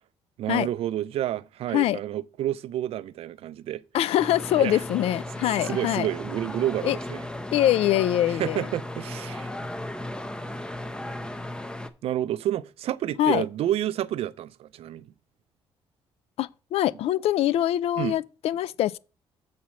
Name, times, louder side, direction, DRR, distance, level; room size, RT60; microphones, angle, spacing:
voice 1, 0.4-3.8 4.6-4.8 5.6-7.2 8.3-9.5 12.0-15.1 18.0-18.2, right 12 dB, 75° right, 0.5 m, -29 dB
voice 2, 3.9-6.1 6.8-7.0 7.5-8.6 13.2-13.5 16.4-19.0, left 13 dB, 80° left, 0.4 m, -24 dB
sound 1, 4.2-11.9, left 1 dB, 10° left, 0.6 m, -35 dB
7.2 x 4.2 x 6.3 m
cardioid pair, 120°, 10 cm